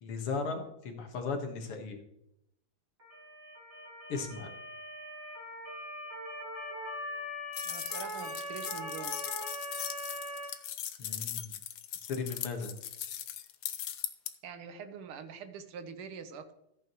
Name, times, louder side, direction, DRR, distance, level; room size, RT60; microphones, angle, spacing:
voice 1, 0.0-2.0 4.1-4.5 11.0-11.5 12.1-12.7, left 4 dB, 85° left, 3 dB, 2.5 m, -36 dB
Motor vehicle (road) / Siren, 3.0-10.5, left 1 dB, 35° right, 5.6 m, -41 dB
sound 1, 7.5-14.3, left 10 dB, 65° left, 1.1 m, -39 dB
voice 2, 7.7-9.2 14.4-16.5, right 6 dB, 85° right, 9 dB, 2.0 m, -44 dB
14.0 x 8.8 x 3.1 m, 0.80 s
omnidirectional pair, 2.4 m